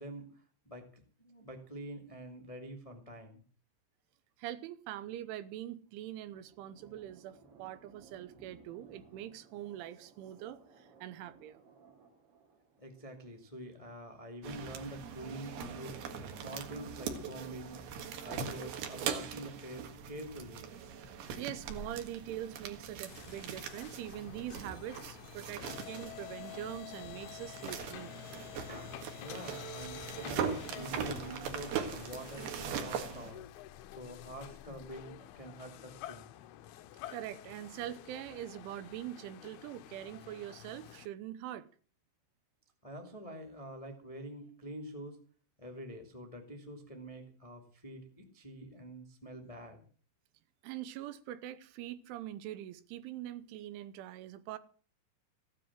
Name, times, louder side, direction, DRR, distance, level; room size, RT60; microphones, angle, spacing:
voice 1, 0.0-3.4 12.8-16.0 16.4-17.8 18.2-20.7 28.7-33.5 33.9-36.3 42.8-45.2 45.6-49.8, right 1 dB, 50° left, 0.4 m, -46 dB
voice 2, 4.4-11.6 21.4-28.1 37.1-41.7 50.6-54.6, right 12 dB, 85° right, 3.4 m, -43 dB
sound 1, 5.8-14.2, right 4 dB, 40° right, 2.3 m, -61 dB
sound 2, 14.4-33.3, right 7 dB, 60° right, 3.3 m, -41 dB
sound 3, 23.1-41.1, left 14 dB, 85° left, 2.2 m, -49 dB
16.0 x 9.9 x 7.5 m
omnidirectional pair, 5.6 m